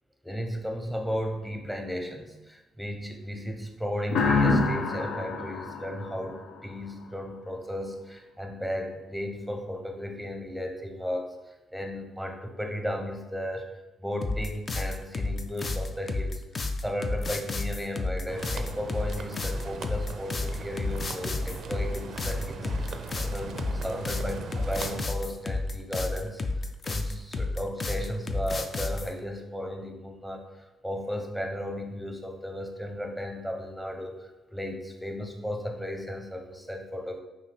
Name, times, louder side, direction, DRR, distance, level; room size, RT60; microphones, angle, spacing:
voice 1, 0.2-13.7 14.0-16.4 16.8-26.4 26.8-37.2, equal, ahead, 4 dB, 0.7 m, -35 dB
sound 1, 4.1-6.8, left 3 dB, 80° left, 0.6 m, -26 dB
sound 2, 14.2-29.1, left 3 dB, 35° left, 0.4 m, -31 dB
sound 3, 18.3-25.0, right 5 dB, 60° right, 0.4 m, -39 dB
5.4 x 2.7 x 3.4 m, 1.1 s
cardioid pair, 90°, 0 cm